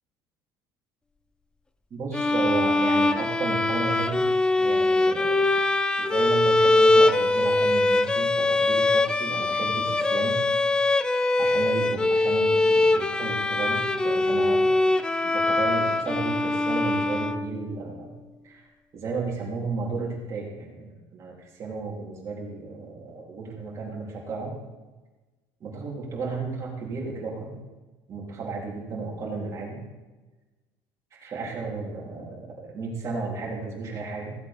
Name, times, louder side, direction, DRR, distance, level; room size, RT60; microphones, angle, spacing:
voice 1, 1.9-4.3 4.6-5.5 6.0-10.4 10.9-11.0 11.4-14.9 15.2-18.1 18.4-18.7 18.9-24.6 25.6-27.6 28.1-29.8 31.1-34.4, right 3 dB, 35° right, -3 dB, 3.4 m, -33 dB
sound 1, 2.1-17.8, left 2 dB, 10° left, 0.4 m, -22 dB
16.0 x 8.2 x 3.6 m, 1.2 s
cardioid pair, 145°, 9 cm